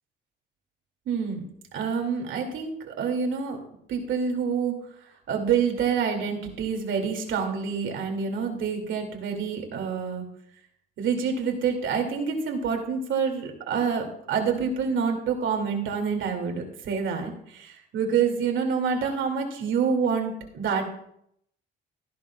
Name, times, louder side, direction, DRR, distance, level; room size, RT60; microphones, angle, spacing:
voice 1, 1.1-1.5 1.7-3.6 3.9-4.8 5.3-10.2 11.0-20.9, right 6 dB, 75° right, 3 dB, 2.6 m, -27 dB
14.5 x 10.5 x 2.4 m, 0.72 s
cardioid pair, 90°, 20 cm